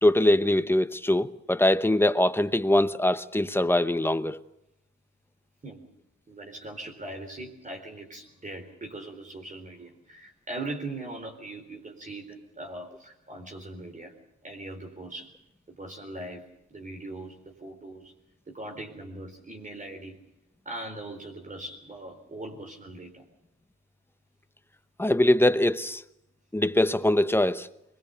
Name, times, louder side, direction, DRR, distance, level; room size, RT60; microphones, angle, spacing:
voice 1, 0.0-4.4 25.0-26.0 26.5-27.7, left 1 dB, 10° left, 0.9 m, -22 dB
voice 2, 6.3-14.2 14.4-15.4 15.7-18.1 18.5-20.2 20.6-23.3, right 2 dB, 25° right, 4.1 m, -40 dB
23.5 x 22.0 x 6.9 m
cardioid pair, 90°, 30 cm